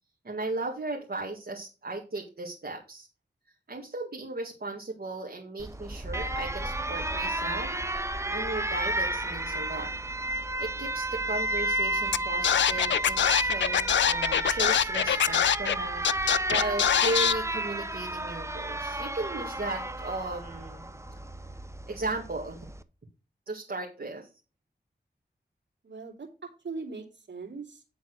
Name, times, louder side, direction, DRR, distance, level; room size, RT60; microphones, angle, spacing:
voice 1, 0.2-3.1 3.7-7.7 8.3-9.9 10.6-20.9 21.9-22.6 23.5-24.3, right 2 dB, 55° right, 0 dB, 2.1 m, -36 dB
Alarm, 5.6-22.8, right 1 dB, 15° right, 0.8 m, -32 dB
Scratching (performance technique), 12.1-12.2 12.4-15.8 16.0-17.3, left 9 dB, 80° left, 0.4 m, -23 dB
voice 2, 25.8-27.8, right 4 dB, 75° right, -1 dB, 3.0 m, -40 dB
10.0 x 4.1 x 6.3 m, 0.33 s
cardioid pair, 45°, 19 cm